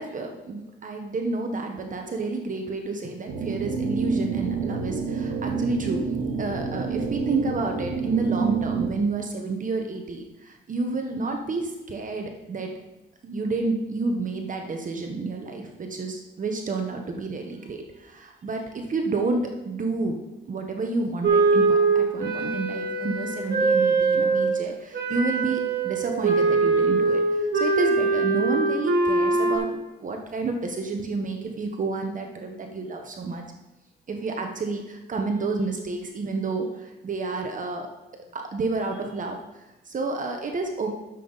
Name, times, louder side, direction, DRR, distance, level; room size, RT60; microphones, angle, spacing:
voice 1, 0.0-6.1 6.4-12.7 13.2-20.2 20.5-33.4 34.1-37.9 38.3-40.9, right 3 dB, 40° right, 3 dB, 1.1 m, -30 dB
sound 1, 3.3-8.9, right 5 dB, 80° right, 1.3 m, -28 dB
Wind instrument woodwind instrument, 21.2-24.5 24.9-29.6, right 3 dB, 60° right, 3.2 m, -22 dB
11.5 x 7.2 x 4.0 m, 1.0 s
cardioid pair, 90°, 20 cm